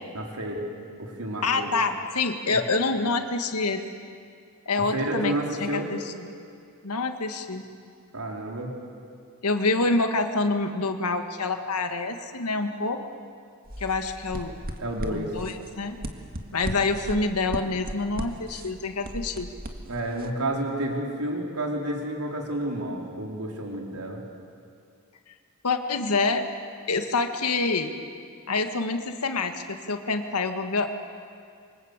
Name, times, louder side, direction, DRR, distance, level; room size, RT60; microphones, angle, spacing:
voice 1, 0.1-0.7 1.0-1.7 2.5-2.6 4.9-5.9 8.1-8.7 14.8-15.3 19.9-24.2, right 1 dB, 85° right, 0 dB, 4.4 m, -30 dB
voice 2, 1.4-3.8 4.7-5.4 5.6-6.1 6.8-7.7 9.4-13.0 13.8-14.6 15.1-16.0 16.5-19.5 25.6-26.4 26.9-27.9 28.5-30.9, left 3 dB, 85° left, 6 dB, 1.9 m, -26 dB
sound 1, 13.7-20.3, right 1 dB, 45° right, 1.9 m, -37 dB
28.0 x 24.5 x 8.2 m, 2.3 s
head